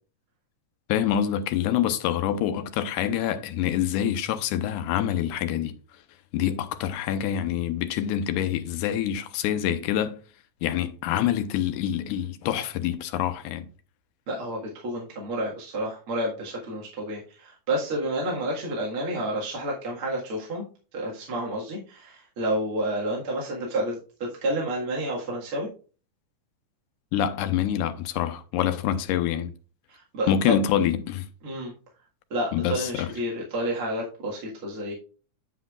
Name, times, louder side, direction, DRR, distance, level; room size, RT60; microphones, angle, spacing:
voice 1, 0.9-5.7 6.3-10.2 10.6-13.7 27.1-29.5 30.3-31.3 32.5-33.1, left 10 dB, 80° left, 2.1 m, -26 dB
voice 2, 14.3-20.7 20.9-25.7 29.9-30.6 31.4-31.7 32.3-34.9, right 1 dB, 45° right, 2.3 m, -30 dB
8.0 x 8.0 x 2.4 m
omnidirectional pair, 3.7 m